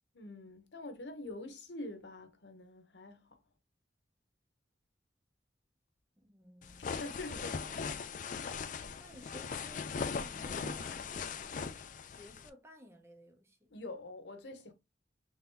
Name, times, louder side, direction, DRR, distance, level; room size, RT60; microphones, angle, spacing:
voice 1, 0.1-3.3 7.0-7.9 13.7-14.7, left 2 dB, 75° left, 0.8 m, -45 dB
voice 2, 6.2-7.0 7.4-7.5 9.0-11.5 12.1-13.7, equal, 15° right, 0.6 m, -56 dB
sound 1, 6.6-12.5, left 5 dB, 45° left, 0.4 m, -39 dB
3.4 x 2.7 x 3.6 m
head